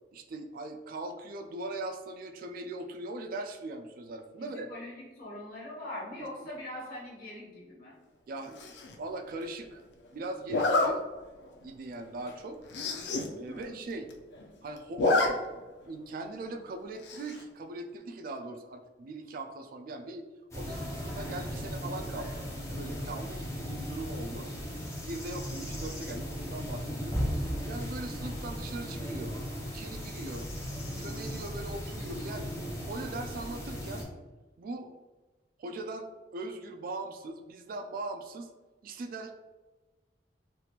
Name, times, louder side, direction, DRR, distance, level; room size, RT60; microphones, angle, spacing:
voice 1, 0.1-4.7 6.2-6.5 8.3-9.8 10.1-11.0 11.6-12.6 13.4-14.1 14.6-20.3 20.5-24.5 25.0-30.5 31.0-32.5 32.8-34.1 34.6-34.9 35.6-38.5 38.8-39.3, right 2 dB, 55° right, 6 dB, 0.3 m, -40 dB
voice 2, 4.7-8.0 13.5-13.7, left 1 dB, 55° left, -6 dB, 1.4 m, -42 dB
Zipper (clothing), 8.6-9.0 10.5-10.9 11.4-11.6 11.9-12.0 12.3-12.4 12.7-13.3 13.6-13.7 13.9-14.5 14.8-15.3 15.6-15.7 17.0-17.4, left 2 dB, 70° left, 0.5 m, -28 dB
sound 1, 20.5-34.0, equal, 15° left, 0.7 m, -37 dB
3.4 x 2.9 x 2.4 m, 1.2 s
head